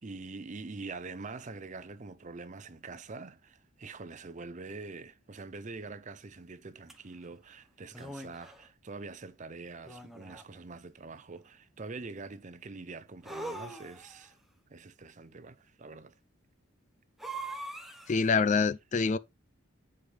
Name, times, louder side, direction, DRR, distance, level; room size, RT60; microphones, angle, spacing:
voice 1, 0.0-14.4 14.7-16.1, right 3 dB, 35° right, 0.6 m, -44 dB
sound 1, 6.9-7.0 7.9-8.6 9.8-10.6 13.2-14.3 17.2-18.3, right 2 dB, ahead, 0.9 m, -42 dB
voice 2, 18.1-19.2, left 5 dB, 35° left, 0.3 m, -26 dB
8.2 x 4.9 x 3.4 m
head